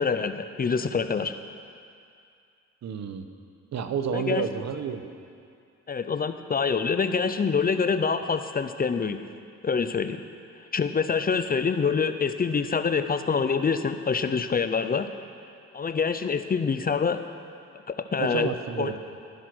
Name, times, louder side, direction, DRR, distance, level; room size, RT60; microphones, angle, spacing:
voice 1, 0.0-1.3 4.1-4.4 5.9-9.2 9.6-10.2 10.7-15.1 15.7-17.2 17.9-18.5 18.8-19.0, left 5 dB, 30° left, 9 dB, 0.7 m, -26 dB
voice 2, 2.8-3.3 3.7-5.0 18.2-18.9, right 7 dB, 60° right, 8 dB, 1.2 m, -30 dB
15.5 x 10.5 x 6.3 m, 2.4 s
cardioid pair, 90°, 30 cm